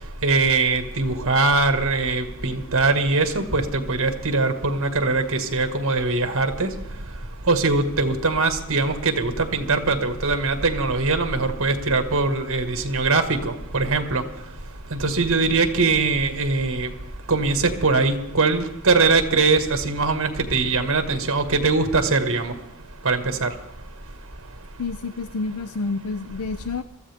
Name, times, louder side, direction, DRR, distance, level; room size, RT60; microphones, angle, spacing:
voice 1, 0.2-6.7 7.5-14.2 15.0-16.9 17.3-22.5 23.1-23.5, right 3 dB, 65° right, 6 dB, 1.7 m, -21 dB
voice 2, 24.8-26.8, left 3 dB, 75° left, 13 dB, 0.5 m, -29 dB
23.0 x 14.0 x 3.5 m, 0.93 s
head